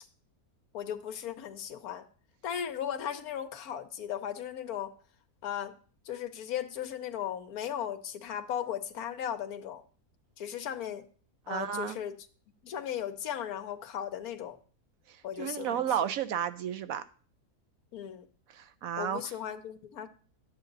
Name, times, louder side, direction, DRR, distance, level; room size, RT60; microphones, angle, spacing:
voice 1, 0.7-2.0 2.4-4.9 5.4-5.7 6.1-9.8 10.4-11.1 11.5-12.2 12.6-14.6 15.2-16.1 17.9-18.3 19.0-20.1, left 9 dB, 70° left, 1.3 m, -36 dB
voice 2, 11.5-12.0 15.1-17.0 18.5-19.2, right 9 dB, 70° right, 1.0 m, -32 dB
11.0 x 8.3 x 3.9 m
omnidirectional pair, 1.6 m